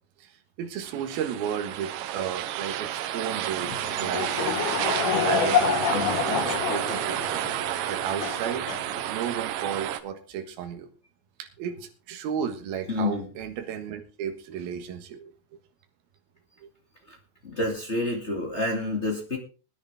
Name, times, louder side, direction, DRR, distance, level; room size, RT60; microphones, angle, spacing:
voice 1, 0.6-4.7 5.2-7.5 7.9-8.7 9.1-10.9 11.4-15.3 16.6-16.7, right 8 dB, 60° right, 6 dB, 3.0 m, -33 dB
sound 1, 0.8-10.0, right 12 dB, 85° right, 3.3 m, -30 dB
Laughter / Crowd, 3.6-9.4, left 7 dB, 60° left, 3.1 m, -28 dB
voice 2, 5.9-6.4 12.9-13.3 17.1-17.2 17.4-19.4, left 2 dB, 35° left, 0 dB, 1.1 m, -29 dB
20.0 x 10.0 x 3.5 m, 0.35 s
omnidirectional pair, 5.3 m